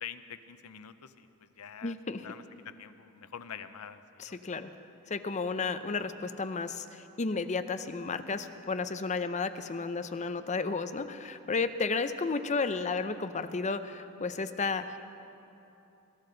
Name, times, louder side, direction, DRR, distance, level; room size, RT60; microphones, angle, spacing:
voice 1, 0.0-1.9 2.2-4.4, left 8 dB, 80° left, 11 dB, 0.7 m, -46 dB
voice 2, 1.8-2.3 4.2-4.7 5.1-15.0, left 4 dB, 35° left, 10 dB, 0.6 m, -33 dB
23.0 x 13.5 x 3.9 m, 2.8 s
head